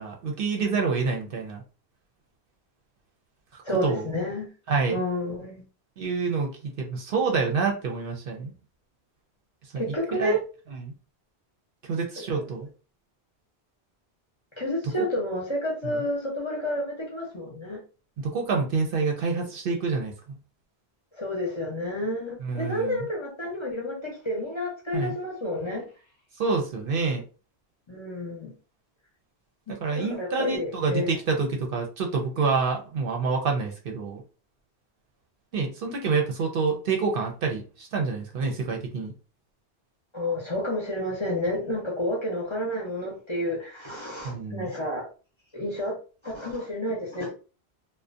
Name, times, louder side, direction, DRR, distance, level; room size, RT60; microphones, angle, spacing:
voice 1, 0.0-1.6 3.8-4.0 4.7-5.0 6.0-8.5 9.7-9.8 10.2-10.4 10.7-10.9 11.9-12.7 15.8-16.0 18.2-20.4 22.4-23.1 24.9-25.2 26.4-27.2 29.8-34.2 35.5-39.1 44.2-44.7, right 4 dB, 65° right, 0.7 m, -27 dB
voice 2, 3.6-4.5 4.9-5.6 9.8-10.4 12.3-12.4 14.6-17.8 21.2-25.8 27.9-28.5 29.7-31.2 40.1-45.1 45.5-46.0 46.2-47.3, left 1 dB, 35° left, 0.6 m, -30 dB
2.4 x 2.1 x 2.5 m
omnidirectional pair, 1.1 m